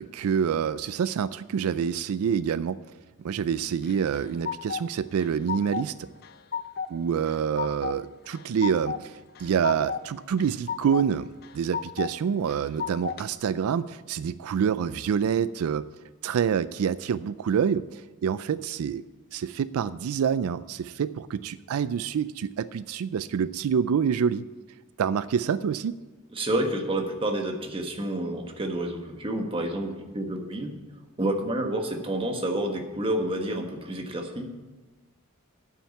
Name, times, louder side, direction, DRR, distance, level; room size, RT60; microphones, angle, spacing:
voice 1, 0.0-2.8 3.2-6.1 6.9-11.3 11.5-15.8 16.2-19.0 19.3-24.4 25.0-25.9, right 7 dB, 85° right, 16 dB, 0.4 m, -27 dB
sound 1, 3.8-4.8 5.2-5.9 6.2-6.9 7.3-8.0 8.3-9.0 9.3-10.0 10.4-11.1 11.4-12.1 12.5-13.2, left 7 dB, 45° left, 0.5 m, -33 dB
voice 2, 26.3-30.7 31.2-34.6, right 1 dB, 25° right, 3 dB, 1.4 m, -29 dB
9.2 x 7.2 x 8.5 m, 1.2 s
head